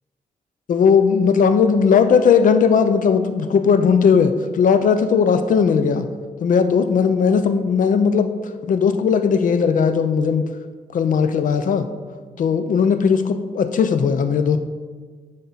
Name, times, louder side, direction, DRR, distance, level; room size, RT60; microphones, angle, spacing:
voice 1, 0.7-6.1 6.4-8.3 8.7-10.5 10.9-11.9 12.4-14.6, left 6 dB, 65° left, 9 dB, 0.6 m, -17 dB
9.8 x 5.7 x 4.1 m, 1.5 s
wide cardioid pair, 175°, 14 cm